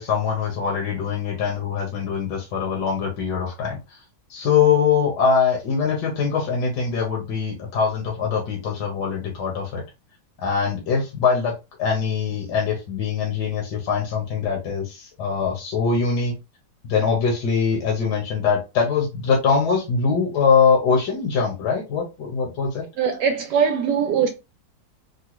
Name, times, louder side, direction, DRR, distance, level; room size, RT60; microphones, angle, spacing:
voice 1, 0.0-3.8 4.3-9.8 10.4-11.5 11.8-16.3 16.9-22.8, left 6 dB, 75° left, 1.5 m, -22 dB
voice 2, 23.0-24.3, right 7 dB, 75° right, 1.1 m, -21 dB
3.7 x 2.2 x 2.9 m
omnidirectional pair, 1.9 m